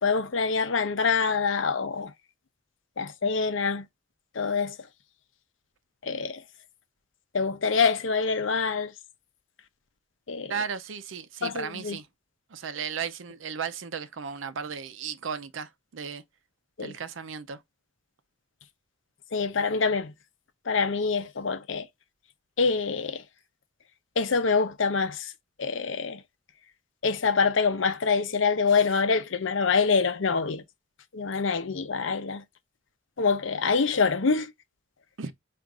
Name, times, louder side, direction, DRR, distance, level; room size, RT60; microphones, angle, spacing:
voice 1, 0.0-2.1 3.0-3.8 4.3-4.8 6.0-6.4 7.3-8.9 10.3-10.5 11.4-12.0 16.8-16.9 19.3-20.1 20.7-21.9 22.6-23.2 24.2-25.3 25.6-26.2 27.0-30.6 31.1-32.4 33.2-34.5, left 5 dB, 75° left, 0.7 m, -25 dB
voice 2, 10.5-12.1 12.5-16.2 16.8-17.6 35.2-35.3, right 6 dB, 80° right, 0.6 m, -35 dB
4.7 x 2.5 x 3.8 m
head